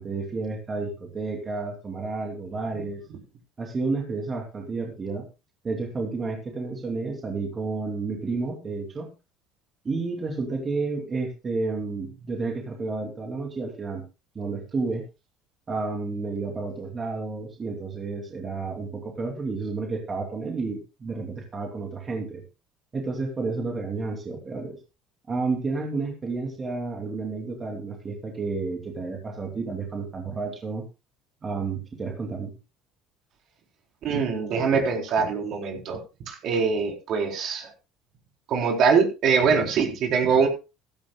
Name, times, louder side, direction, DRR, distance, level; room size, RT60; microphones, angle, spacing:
voice 1, 0.0-3.0 3.6-5.3 5.6-9.1 9.8-14.0 14.3-15.0 15.7-22.4 22.9-24.8 25.3-30.8 31.4-32.5, right 3 dB, 25° right, 1 dB, 2.9 m, -31 dB
voice 2, 34.0-36.0 36.3-37.7 38.5-40.5, right 5 dB, 55° right, 2 dB, 4.0 m, -23 dB
15.5 x 14.0 x 2.3 m, 0.28 s
cardioid pair, 115°, 0 cm